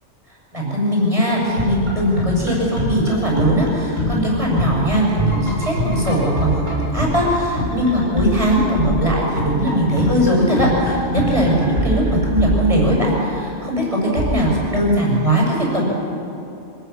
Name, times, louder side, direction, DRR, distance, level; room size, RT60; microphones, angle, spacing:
voice 1, 0.5-15.8, equal, 25° right, -3 dB, 6.6 m, -19 dB
sound 1, 1.4-13.3 14.2-14.8, equal, 70° right, 6.7 m, -24 dB
26.0 x 19.0 x 7.0 m, 2.8 s
omnidirectional pair, 1.4 m